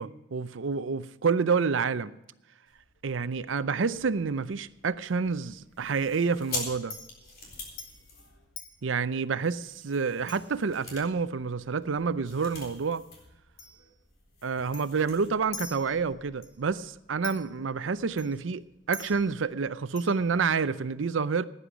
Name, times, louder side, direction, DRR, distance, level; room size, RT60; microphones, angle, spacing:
voice 1, 0.0-2.1 3.0-7.0 8.8-13.0 14.4-21.4, right 5 dB, 70° right, 0.6 m, -28 dB
Chink clink, 2.7-20.9, left 4 dB, 85° left, 2.7 m, -50 dB
sound 1, 5.7-8.8 9.4-13.3 13.6-13.7 14.0-15.3, left 3 dB, 50° left, 4.0 m, -43 dB
17.0 x 9.9 x 5.0 m
head